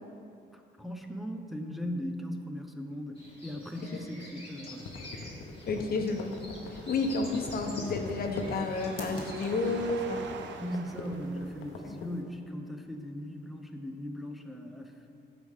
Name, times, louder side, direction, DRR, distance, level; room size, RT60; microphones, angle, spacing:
voice 1, 0.5-4.8 10.6-15.2, equal, ahead, 3 dB, 0.8 m, -38 dB
sound 1, 3.2-9.9, left 1 dB, 25° left, 2.3 m, -47 dB
sound 2, 4.7-12.2, left 4 dB, 85° left, 1.0 m, -41 dB
voice 2, 5.7-6.3 6.7-10.3 11.8-11.9, left 3 dB, 50° left, 3 dB, 1.1 m, -31 dB
sound 3, 5.7-12.0, right 6 dB, 70° right, 0.7 m, -47 dB
14.5 x 5.0 x 3.7 m, 2.5 s
cardioid pair, 90°, 20 cm